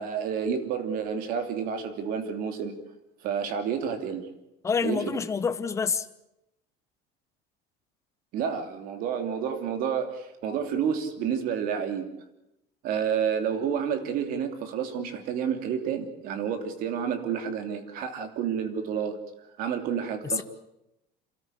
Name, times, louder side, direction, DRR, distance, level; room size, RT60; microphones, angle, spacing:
voice 1, 0.0-2.8 3.2-4.3 4.8-5.0 8.3-12.1 12.8-19.2 19.6-20.4, right 7 dB, 50° right, 3.0 m, -30 dB
voice 2, 4.6-6.1 20.4-20.5, left 5 dB, 15° left, 0.8 m, -27 dB
28.5 x 13.0 x 9.9 m
cardioid pair, 170°, 19 cm